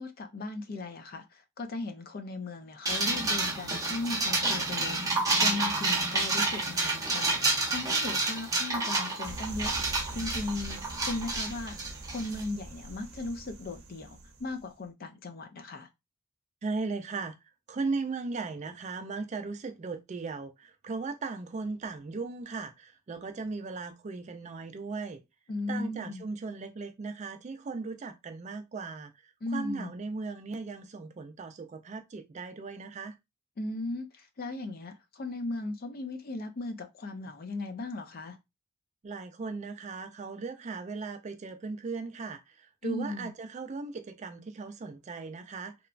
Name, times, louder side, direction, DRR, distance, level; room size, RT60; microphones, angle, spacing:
voice 1, 0.0-5.0 5.4-7.4 7.7-9.7 10.1-11.8 12.1-15.9 25.5-26.2 29.4-29.9 33.6-38.4 42.8-43.3, left 2 dB, 45° left, 0.4 m, -37 dB
sound 1, 2.8-12.4, right 2 dB, 15° right, 0.7 m, -29 dB
sound 2, 9.2-14.6, right 2 dB, 80° right, 0.6 m, -43 dB
voice 2, 16.6-17.4 17.7-25.2 25.7-29.1 29.5-33.2 39.0-45.8, right 4 dB, 35° right, 0.3 m, -37 dB
2.9 x 2.2 x 2.4 m
head